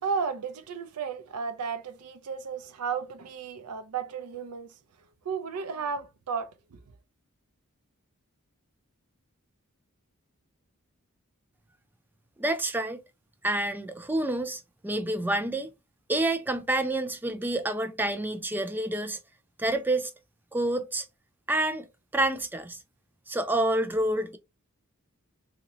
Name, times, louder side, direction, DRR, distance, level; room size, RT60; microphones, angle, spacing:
voice 1, 0.0-4.8 5.2-6.8, right 5 dB, 90° right, 0.5 m, -34 dB
voice 2, 12.4-13.0 13.4-15.7 16.1-19.2 19.6-20.1 20.5-21.1 21.5-21.9 22.1-22.8 23.3-24.4, right 1 dB, 10° right, 0.3 m, -28 dB
2.8 x 2.6 x 2.9 m
head